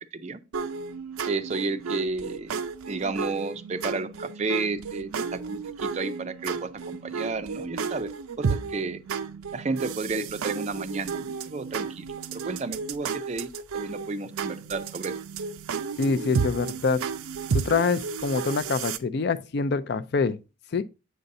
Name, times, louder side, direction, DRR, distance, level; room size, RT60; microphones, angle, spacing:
sound 1, 0.5-19.0, right 5 dB, 85° right, 0.5 m, -33 dB
voice 1, 1.3-2.5 2.9-8.1 8.4-9.0 9.5-12.0 12.3-13.5 13.7-15.1, right 3 dB, 30° right, 0.4 m, -32 dB
voice 2, 16.0-17.0 17.5-20.4 20.7-20.8, left 4 dB, 50° left, 0.4 m, -25 dB
7.8 x 5.3 x 2.6 m
head